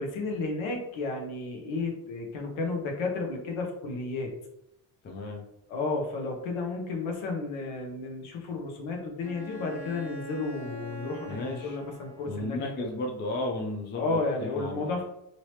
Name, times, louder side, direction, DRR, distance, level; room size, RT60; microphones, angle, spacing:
voice 1, 0.0-4.3 5.7-12.9 13.9-15.0, left 3 dB, 70° left, 1 dB, 1.0 m, -32 dB
voice 2, 5.0-5.4 11.3-11.8 12.3-14.9, left 2 dB, 25° left, 1 dB, 0.3 m, -34 dB
Bowed string instrument, 9.2-12.7, right 1 dB, 30° right, 1.1 m, -43 dB
2.9 x 2.8 x 3.1 m, 0.82 s
cardioid pair, 140°, 49 cm